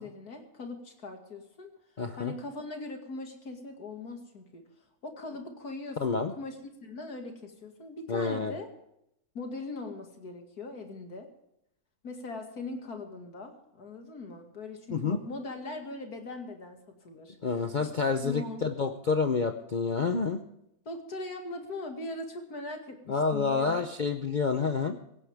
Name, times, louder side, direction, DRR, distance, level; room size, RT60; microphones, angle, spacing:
voice 1, 0.0-1.7 2.2-4.6 5.0-6.6 6.8-8.7 9.3-11.3 12.0-16.8 17.0-17.5 17.8-17.9 18.2-18.7 20.9-23.9, left 2 dB, 80° left, 4 dB, 2.7 m, -40 dB
voice 2, 2.0-2.3 6.0-6.3 8.1-8.5 14.9-15.2 17.4-20.4 23.1-25.0, left 4 dB, 40° left, 6 dB, 0.7 m, -28 dB
17.0 x 16.5 x 3.5 m, 0.80 s
omnidirectional pair, 1.6 m